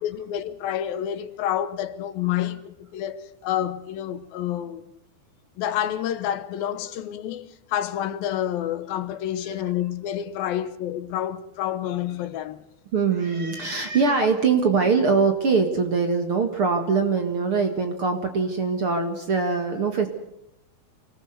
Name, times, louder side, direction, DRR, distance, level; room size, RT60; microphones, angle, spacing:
voice 1, 0.0-4.8 5.6-12.6, left 11 dB, 75° left, 2.7 m, -29 dB
voice 2, 12.9-20.1, right 5 dB, 45° right, 2.1 m, -22 dB
26.0 x 19.0 x 6.7 m
omnidirectional pair, 4.4 m